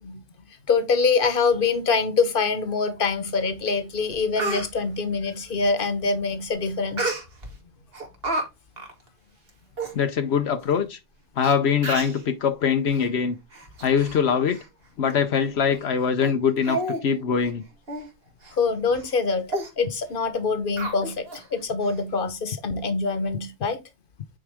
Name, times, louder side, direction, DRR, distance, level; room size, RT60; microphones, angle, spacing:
voice 1, 0.7-7.1 18.6-19.5 19.8-21.3 21.5-23.8, left 4 dB, 55° left, 1.3 m, -24 dB
Speech, 3.7-3.8 4.1-4.7 7.0-7.5 7.9-8.4 8.8-8.9 9.5-9.6 9.8-9.9 10.7-10.8 11.4-11.5 11.8-12.2 12.9-13.1 13.5-14.2 14.5-14.7 15.1-15.2 15.7-15.9 16.2-16.3 16.6-17.0 17.3-17.5 17.9-18.1 18.4-18.6 18.9-19.1 19.5-19.7 20.8-21.4 21.8-21.9, right 2 dB, 65° right, 2.0 m, -30 dB
voice 2, 9.9-11.0 11.4-13.4 13.8-14.6 15.0-17.6, left 7 dB, 80° left, 1.0 m, -23 dB
9.0 x 4.7 x 3.5 m
omnidirectional pair, 1.1 m